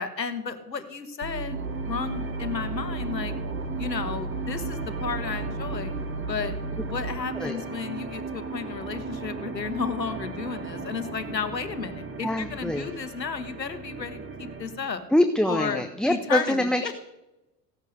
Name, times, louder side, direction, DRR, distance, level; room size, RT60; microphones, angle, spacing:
voice 1, 0.0-3.3 3.8-5.9 6.3-15.0 15.5-15.8 16.1-16.9, left 5 dB, 85° left, 10 dB, 1.6 m, -33 dB
sound 1, 1.2-7.2, right 3 dB, 85° right, 1.3 m, -34 dB
sound 2, 1.5-14.8, right 4 dB, 25° right, 2.4 m, -37 dB
voice 2, 12.2-12.9 15.1-16.8, left 1 dB, ahead, 7 dB, 1.2 m, -24 dB
17.0 x 12.0 x 6.6 m, 0.99 s
figure-of-eight pair, 70°, 49 cm